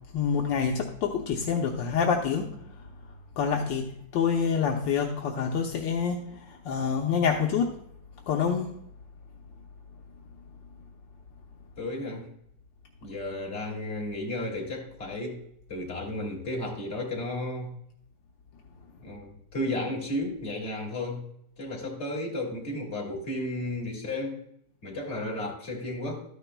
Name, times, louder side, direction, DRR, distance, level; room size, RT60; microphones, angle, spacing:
voice 1, 0.1-2.5 3.4-3.9 4.1-6.2 6.5-7.7 8.3-8.7, left 6 dB, 75° left, 2 dB, 1.5 m, -26 dB
voice 2, 11.8-12.3 13.0-15.4 15.7-17.7 19.0-21.2 21.6-24.4 24.8-26.2, left 1 dB, 35° left, -1 dB, 2.6 m, -33 dB
12.5 x 10.0 x 2.2 m, 0.74 s
omnidirectional pair, 2.0 m